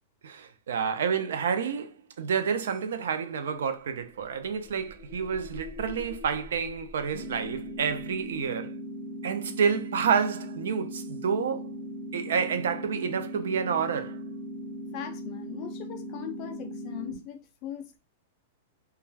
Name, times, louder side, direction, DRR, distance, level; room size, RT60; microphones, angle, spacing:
voice 1, 0.2-8.7 9.2-11.7 12.1-14.2, right 6 dB, 80° right, 0.4 m, -29 dB
sound 1, 3.8-8.5, left 2 dB, 30° right, 0.8 m, -46 dB
sound 2, 7.1-17.1, equal, 50° right, 1.1 m, -39 dB
voice 2, 14.9-18.0, left 10 dB, 30° left, 0.3 m, -40 dB
2.3 x 2.2 x 3.2 m
supercardioid pair, 170°, 0 cm